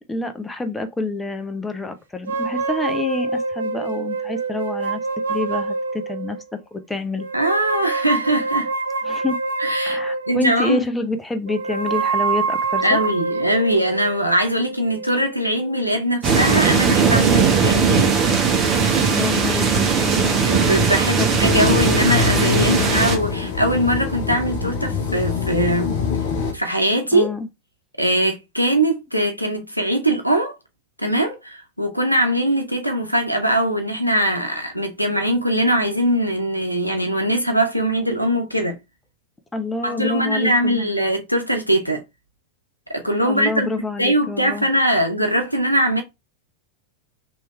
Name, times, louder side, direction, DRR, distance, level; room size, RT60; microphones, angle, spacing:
voice 1, 0.1-5.0 5.3-6.4 6.7-7.3 9.0-9.4 9.8-13.0 19.1-20.4 21.2-21.4 27.1-27.5 39.5-40.9 43.2-44.7, left 3 dB, 10° left, 0.5 m, -27 dB
sound 1, 2.3-6.4 7.2-10.6 11.5-15.8, right 4 dB, 70° right, 0.4 m, -26 dB
voice 2, 7.3-8.7 9.6-10.0 10.3-10.8 12.8-18.1 20.4-25.9 26.5-27.3 28.0-30.5 31.0-38.8 39.8-42.0 42.9-43.7 44.0-46.0, right 1 dB, 90° left, 0.7 m, -21 dB
sound 2, 16.2-23.2, right 5 dB, 30° right, 1.0 m, -18 dB
sound 3, 21.4-26.5, left 6 dB, 50° left, 0.8 m, -24 dB
3.1 x 3.0 x 3.1 m
figure-of-eight pair, 90°, 0 cm